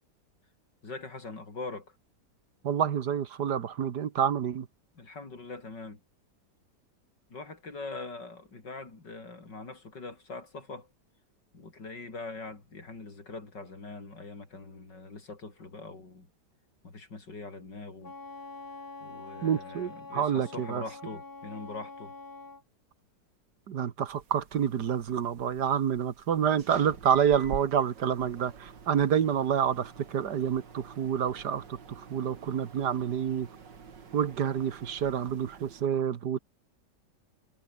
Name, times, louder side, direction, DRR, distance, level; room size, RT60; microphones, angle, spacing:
voice 1, 0.8-2.0 5.0-6.0 7.3-10.9 11.5-16.3 16.8-18.1 19.0-22.1, left 3 dB, 80° left, 5.3 m, -42 dB
voice 2, 2.6-4.7 19.4-20.8 23.7-31.6 32.1-33.5 34.1-36.4, right 8 dB, 70° right, 1.8 m, -28 dB
Wind instrument woodwind instrument, 18.0-22.6, left 3 dB, 55° left, 4.5 m, -45 dB
sound 1, 24.1-35.8, right 6 dB, 85° right, 3.0 m, -48 dB
omnidirectional pair, 1.9 m